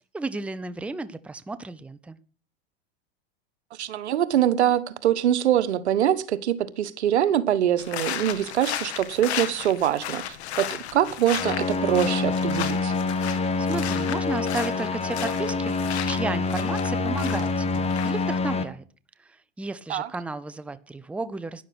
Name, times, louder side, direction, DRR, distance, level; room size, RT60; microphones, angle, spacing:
voice 1, 0.0-2.2 13.6-15.7 16.1-18.8 19.2-21.6, right 3 dB, 5° right, 0.7 m, -33 dB
voice 2, 3.8-10.2 10.6-12.9 19.9-20.1, right 11 dB, 90° right, 1.4 m, -24 dB
sound 1, 7.8-18.4, left 11 dB, 80° left, 2.1 m, -35 dB
sound 2, 11.3-18.6, left 4 dB, 20° left, 1.4 m, -26 dB
12.5 x 10.5 x 6.1 m
supercardioid pair, 125°, 32 cm